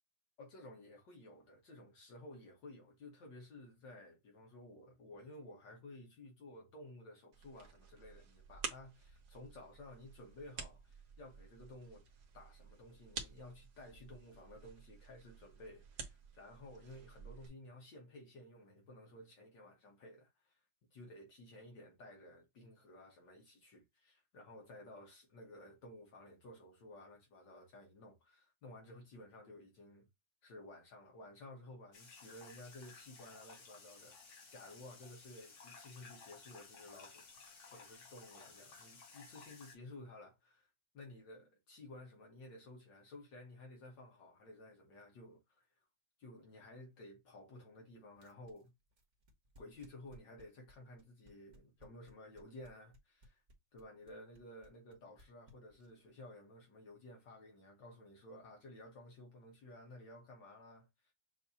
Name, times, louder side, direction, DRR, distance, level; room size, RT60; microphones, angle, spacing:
voice 1, 0.4-12.1 12.3-20.6 20.9-30.1 30.4-45.7 46.2-48.7 49.6-53.4 53.7-61.1, left 1 dB, 65° left, 1.9 m, -55 dB
sound 1, 7.3-17.5, right 5 dB, 60° right, 1.5 m, -51 dB
sound 2, 31.9-39.8, left 4 dB, 50° left, 1.1 m, -57 dB
sound 3, 48.1-56.1, left 1 dB, 40° right, 1.4 m, -62 dB
6.4 x 2.8 x 2.7 m
omnidirectional pair, 2.1 m